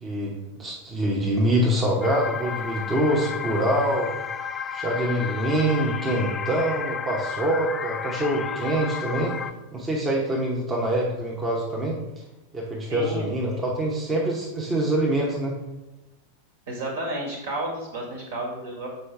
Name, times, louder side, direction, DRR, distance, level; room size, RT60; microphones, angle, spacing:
voice 1, 0.0-4.1 4.7-9.3 9.7-12.0 12.5-15.5, right 1 dB, 20° right, -3 dB, 1.0 m, -25 dB
sound 1, 2.0-9.5, left 7 dB, 20° left, 0.4 m, -32 dB
voice 2, 12.9-13.3 16.7-18.9, right 1 dB, 55° right, -1 dB, 1.9 m, -31 dB
6.7 x 4.6 x 3.3 m, 1.0 s
figure-of-eight pair, 90°, 0 cm